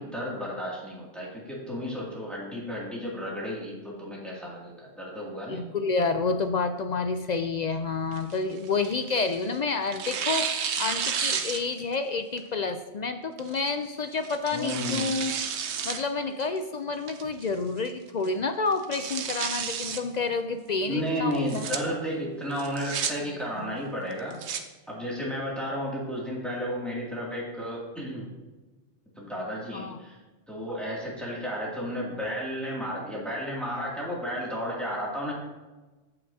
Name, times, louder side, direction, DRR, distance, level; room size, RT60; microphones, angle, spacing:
voice 1, 0.0-5.7 14.5-15.1 20.8-24.4 24.9-28.3 29.2-30.2 30.5-35.3, equal, ahead, -5 dB, 2.3 m, -33 dB
voice 2, 5.5-10.5 10.8-15.3 15.8-21.7 23.2-23.7 29.7-30.0, left 4 dB, 55° left, 8 dB, 0.5 m, -29 dB
Tearing, 8.1-9.4 9.9-12.0 12.4-12.5 13.4-13.7 14.2-16.0 16.4-16.5 17.1-17.5 17.8-17.9 18.2-18.3 18.7-20.0 21.3-21.8 22.6-23.1 24.1-24.6, right 7 dB, 85° right, 1.0 m, -31 dB
15.0 x 5.9 x 2.7 m, 1.2 s
omnidirectional pair, 1.1 m